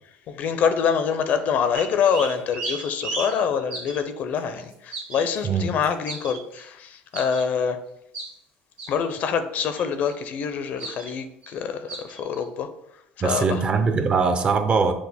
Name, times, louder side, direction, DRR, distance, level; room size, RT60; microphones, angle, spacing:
voice 1, 0.3-7.8 8.9-12.7 13.2-13.6, left 7 dB, 55° left, 0.4 m, -25 dB
sound 1, 1.7-4.0 4.6-6.7 7.1-7.4 8.1-8.3 8.8-9.2 9.6-10.1 10.8-11.1 11.4-11.6 11.9-12.4, right 3 dB, 65° right, 1.5 m, -35 dB
voice 2, 13.2-14.9, right 4 dB, 35° right, 0.5 m, -21 dB
6.0 x 2.1 x 3.4 m
supercardioid pair, 100°, 3 cm